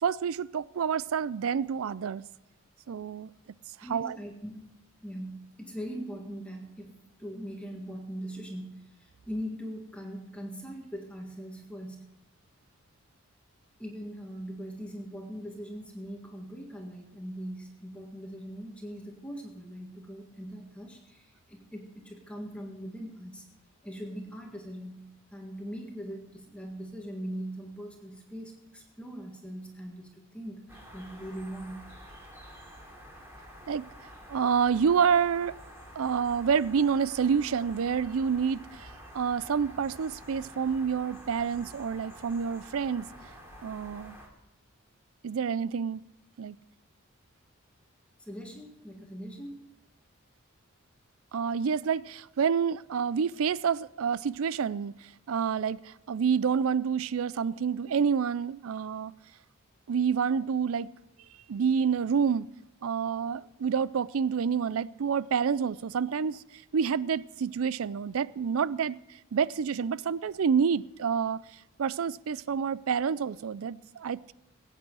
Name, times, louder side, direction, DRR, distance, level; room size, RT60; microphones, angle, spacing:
voice 1, 0.0-2.2 2.9-3.3 3.9-4.2 33.7-33.9 34.3-35.5 36.0-43.1 43.6-44.2 45.2-46.0 46.4-46.6 51.3-54.9 55.3-59.1 59.9-60.9 61.5-62.5 62.8-66.4 66.7-69.0 69.3-71.4 71.8-74.3, right 6 dB, 85° right, 0.4 m, -28 dB
voice 2, 3.8-4.8 5.0-12.0 13.8-23.5 23.8-31.8 48.2-49.6, equal, 5° left, 1.7 m, -41 dB
sound 1, 30.7-44.3, equal, 10° right, 2.9 m, -49 dB
22.0 x 8.9 x 4.8 m
head